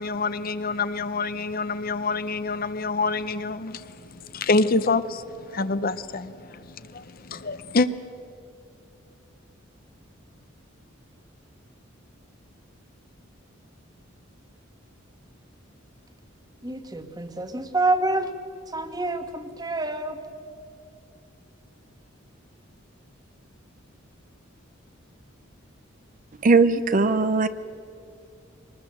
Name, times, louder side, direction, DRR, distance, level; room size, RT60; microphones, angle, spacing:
voice 1, 0.0-7.9, left 3 dB, 45° left, 0.7 m, -27 dB
voice 2, 16.6-18.3 18.7-20.2, right 2 dB, 20° right, 1.4 m, -27 dB
voice 3, 26.4-27.5, right 3 dB, 40° right, 0.5 m, -19 dB
23.5 x 20.0 x 7.7 m
head